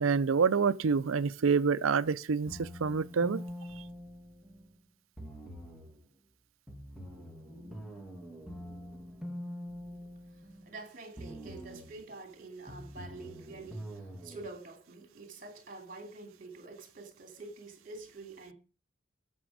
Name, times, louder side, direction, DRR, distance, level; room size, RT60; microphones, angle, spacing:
voice 1, 0.0-3.4, right 5 dB, 90° right, 0.5 m, -27 dB
sound 1, 2.5-4.7 5.2-6.0 6.7-10.8 11.2-12.0 12.7-14.5, equal, ahead, 1.6 m, -44 dB
voice 2, 10.3-18.5, right 3 dB, 40° right, 3.0 m, -47 dB
15.0 x 6.3 x 5.0 m
head